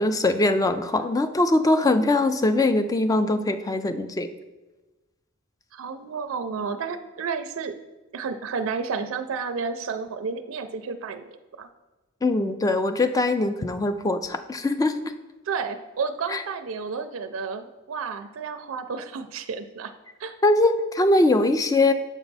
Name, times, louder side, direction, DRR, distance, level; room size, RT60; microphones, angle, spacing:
voice 1, 0.0-4.3 12.2-15.0 16.3-16.4 20.4-21.9, left 2 dB, 15° left, 9 dB, 0.3 m, -22 dB
voice 2, 5.7-7.7 8.1-11.7 15.5-19.9 20.2-20.3, right 5 dB, 75° right, 7 dB, 0.4 m, -31 dB
7.2 x 4.5 x 4.0 m, 1.1 s
head